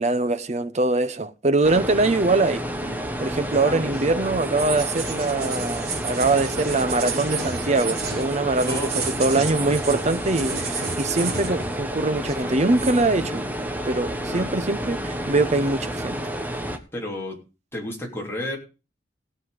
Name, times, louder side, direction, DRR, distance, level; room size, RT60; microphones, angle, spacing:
voice 1, 0.0-2.6 3.2-13.4 13.9-16.2, right 2 dB, 40° right, 0.8 m, -23 dB
sound 1, 1.6-16.8, equal, 10° right, 1.3 m, -30 dB
sound 2, 2.8-11.9 12.2-13.0, right 5 dB, 60° right, 2.7 m, -32 dB
voice 2, 16.9-17.4 17.7-18.6, left 1 dB, 15° left, 3.3 m, -32 dB
17.0 x 7.9 x 4.9 m
head